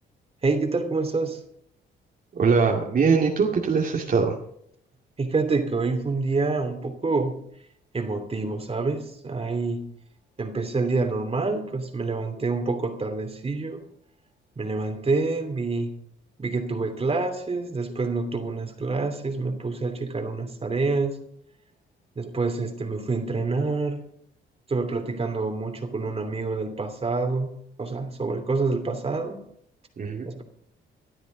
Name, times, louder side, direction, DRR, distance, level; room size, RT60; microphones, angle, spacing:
voice 1, 0.4-1.4 5.2-7.3 7.9-9.9 10.4-13.8 14.6-15.9 16.4-21.2 22.2-24.0 24.7-27.5 27.8-29.5 30.2-30.4, right 3 dB, 30° right, 6 dB, 2.8 m, -27 dB
voice 2, 2.3-4.4 30.0-30.3, right 5 dB, 45° right, -1 dB, 2.2 m, -22 dB
20.0 x 12.0 x 3.9 m, 0.70 s
cardioid pair, 90°, 20 cm